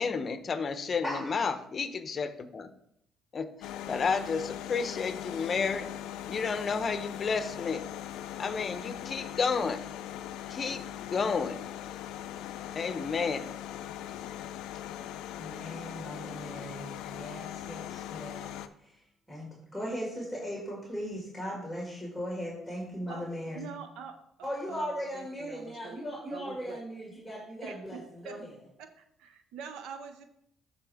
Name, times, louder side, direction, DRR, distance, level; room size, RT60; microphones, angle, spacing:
voice 1, 0.0-2.7 3.3-5.9 6.3-7.8 8.4-9.8 10.5-11.6 12.7-13.4, left 5 dB, 40° left, 11 dB, 0.7 m, -31 dB
voice 2, 1.0-1.5 15.4-18.5 18.8-19.0 19.3-23.7 24.4-28.5, equal, 5° right, -3 dB, 2.0 m, -38 dB
sound 1, 3.6-18.7, left 11 dB, 85° left, 0.4 m, -40 dB
voice 3, 23.5-26.0 26.3-26.8 27.6-28.4 28.8-30.3, right 6 dB, 85° right, 8 dB, 0.7 m, -45 dB
12.0 x 4.2 x 3.5 m, 0.75 s
cardioid pair, 110°, 0 cm